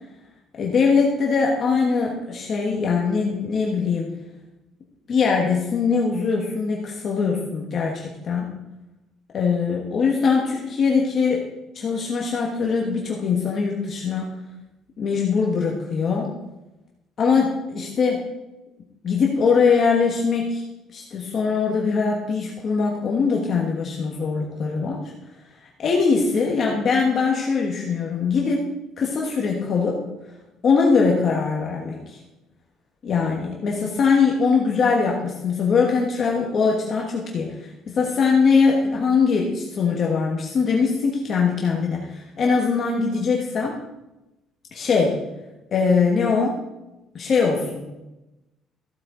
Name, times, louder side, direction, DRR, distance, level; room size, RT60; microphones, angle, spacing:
voice 1, 0.6-4.1 5.1-8.5 9.3-11.4 11.7-14.3 15.0-16.3 17.2-18.3 19.0-20.6 20.9-25.0 25.6-28.6 29.0-30.0 30.6-32.2 33.0-43.7 44.7-45.2 45.7-46.6 47.1-48.0, left 5 dB, 40° left, -1 dB, 1.4 m, -22 dB
14.5 x 8.7 x 3.8 m, 0.99 s
cardioid pair, 160°, 0 cm